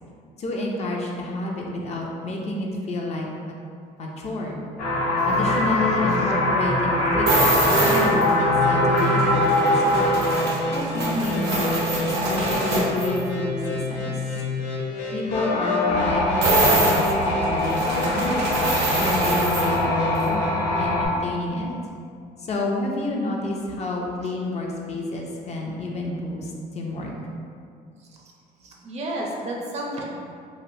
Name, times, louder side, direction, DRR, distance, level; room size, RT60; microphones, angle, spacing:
voice 1, 0.4-3.6 4.0-4.6 5.3-10.1 10.7-14.1 15.1-18.4 19.0-20.5 20.8-21.7 22.4-27.1, left 2 dB, 40° left, -1 dB, 0.5 m, -29 dB
Bell Train, 4.8-11.0 15.3-21.1, left 1 dB, 65° left, 1.1 m, -23 dB
voice 2, 5.2-5.8 6.0-6.2 28.6-30.0, right 1 dB, 40° right, -1 dB, 0.5 m, -33 dB
sound 1, 7.3-8.3 9.0-13.2 16.4-19.8 20.1-20.3, right 1 dB, 80° right, 0.8 m, -24 dB
sound 2, 8.4-20.9, left 2 dB, 85° left, 0.6 m, -30 dB
3.0 x 2.4 x 2.7 m, 2.3 s
cardioid pair, 110°, 17 cm